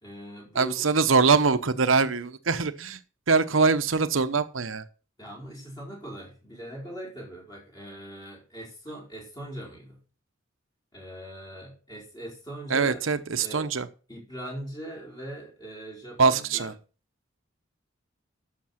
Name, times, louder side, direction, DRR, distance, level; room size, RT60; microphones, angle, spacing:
voice 1, 0.0-0.9 5.2-10.0 10.9-13.1 13.4-13.7 14.1-16.7, right 1 dB, 20° left, 5.1 m, -41 dB
voice 2, 0.5-3.0 3.3-4.8 12.7-13.9 16.2-16.7, right 4 dB, 80° right, 0.9 m, -23 dB
12.5 x 6.8 x 5.8 m
head